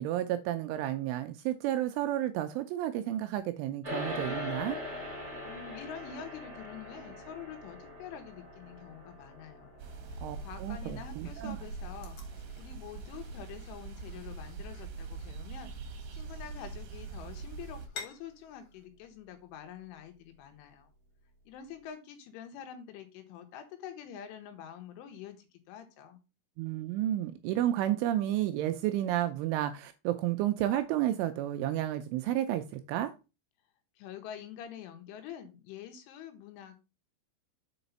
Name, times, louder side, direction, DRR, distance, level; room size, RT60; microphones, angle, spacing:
voice 1, 0.0-4.8 10.2-11.6 26.6-33.1, right 13 dB, 85° right, 8 dB, 2.8 m, -31 dB
sound 1, 3.8-13.4, left 1 dB, 20° right, 3.4 m, -42 dB
voice 2, 5.4-9.7 10.1-15.7 16.1-20.9 21.5-26.2 34.0-36.8, left 9 dB, 80° left, 7 dB, 3.3 m, -46 dB
sound 2, 9.8-17.9, right 4 dB, 65° right, 2.9 m, -43 dB
sound 3, 11.7-18.9, left 6 dB, 55° left, 2.5 m, -52 dB
6.9 x 5.0 x 5.2 m, 0.29 s
omnidirectional pair, 6.0 m